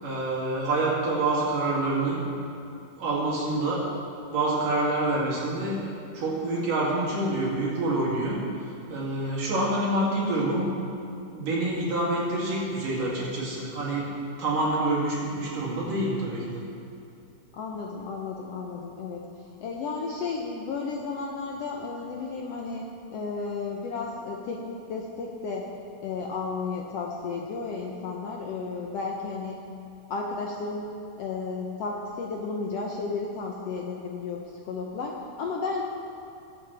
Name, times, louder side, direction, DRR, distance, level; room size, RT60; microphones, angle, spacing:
voice 1, 0.0-2.2 3.0-3.8 4.3-5.9 6.1-8.4 8.9-10.7 11.3-14.1 14.4-16.6, right 2 dB, 80° right, -6 dB, 4.2 m, -27 dB
voice 2, 17.5-19.3 19.6-22.8 23.1-25.7 26.0-29.6 30.1-30.9 31.2-35.8, left 4 dB, 70° left, 0 dB, 1.5 m, -33 dB
20.0 x 8.7 x 3.4 m, 2.6 s
omnidirectional pair, 3.7 m